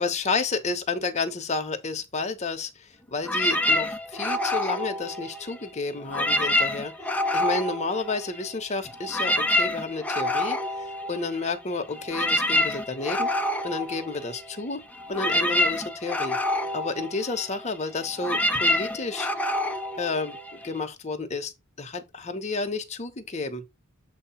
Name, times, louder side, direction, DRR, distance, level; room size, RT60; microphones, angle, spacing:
voice 1, 0.0-10.6 11.1-13.3 13.6-14.8 15.1-16.4 16.7-19.3 20.0-20.4 20.6-21.5 21.8-23.6, left 3 dB, 30° left, 1.0 m, -31 dB
sound 1, 3.2-5.7 6.0-8.6 8.9-20.8, left 1 dB, 5° left, 0.7 m, -27 dB
7.7 x 2.9 x 5.6 m
head